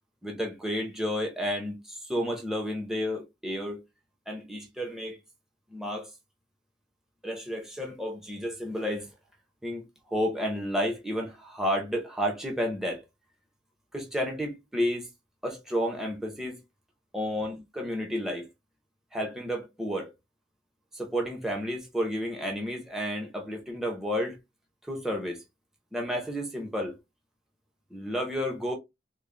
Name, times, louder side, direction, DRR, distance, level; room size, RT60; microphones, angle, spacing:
voice 1, 0.2-3.8 4.3-5.2 5.7-6.1 7.2-9.1 9.6-13.0 13.9-15.1 15.4-16.6 17.1-18.5 19.1-20.1 20.9-24.4 24.8-25.4 25.9-26.9 27.9-28.7, equal, 5° right, 0.7 m, -31 dB
3.8 x 2.1 x 3.2 m
head